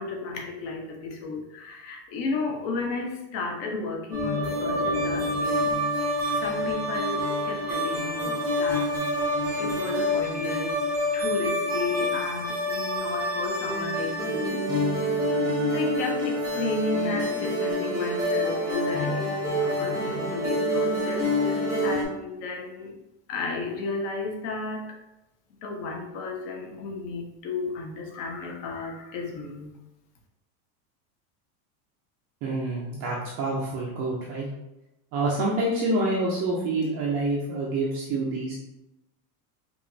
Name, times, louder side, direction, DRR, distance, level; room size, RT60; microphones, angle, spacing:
voice 1, 0.0-5.8 6.4-8.9 9.6-10.8 11.1-14.6 15.4-22.9 23.3-25.0 25.6-29.7, left 3 dB, 45° left, 1 dB, 0.8 m, -33 dB
sound 1, 4.1-22.0, left 1 dB, 5° right, 0.7 m, -27 dB
voice 2, 32.4-34.5 35.1-38.5, right 2 dB, 30° right, -4 dB, 0.4 m, -27 dB
5.0 x 2.9 x 2.6 m, 0.92 s
supercardioid pair, 165°, 45 cm